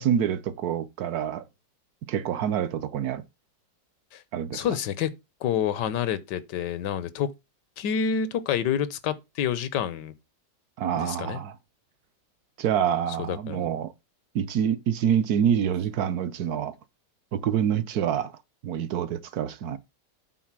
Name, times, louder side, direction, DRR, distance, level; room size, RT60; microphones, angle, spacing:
voice 1, 0.0-1.5 2.1-3.2 4.3-4.6 10.8-11.6 12.6-13.9 14.3-16.7 17.3-18.4 18.6-19.8, right 9 dB, 70° right, 1.2 m, -26 dB
voice 2, 4.5-5.1 5.4-7.3 7.8-10.1 10.9-11.4 13.3-13.6, left 8 dB, 85° left, 1.4 m, -28 dB
8.5 x 3.9 x 5.9 m
omnidirectional pair, 1.8 m